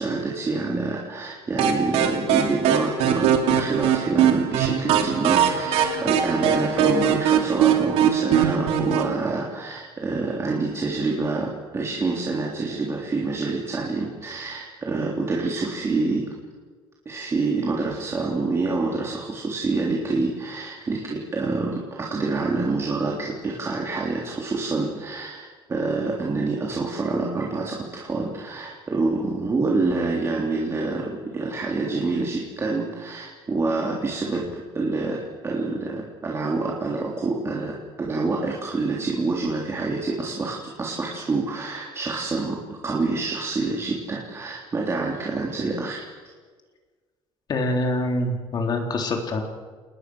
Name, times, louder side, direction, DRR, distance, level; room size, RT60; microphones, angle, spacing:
voice 1, 0.0-16.3 17.1-46.0, right 3 dB, 25° right, -2 dB, 3.7 m, -27 dB
sound 1, 1.6-9.1, right 9 dB, 75° right, 2.9 m, -21 dB
voice 2, 47.5-49.4, left 1 dB, 40° left, 3 dB, 3.8 m, -25 dB
29.0 x 20.0 x 6.5 m, 1.5 s
cardioid pair, 115°, 10 cm